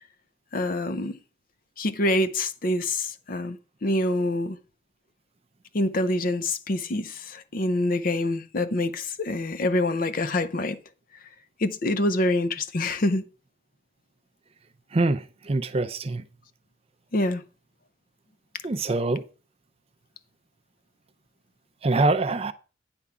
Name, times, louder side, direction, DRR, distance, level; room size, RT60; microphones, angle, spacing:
voice 1, 0.5-1.2 1.8-3.6 3.8-4.6 5.7-10.8 11.6-13.2 17.1-17.4, left 1 dB, 45° left, 0.6 m, -26 dB
voice 2, 14.9-16.2 18.6-19.2 21.8-22.5, right 2 dB, 30° right, 0.4 m, -24 dB
9.4 x 3.6 x 6.8 m
head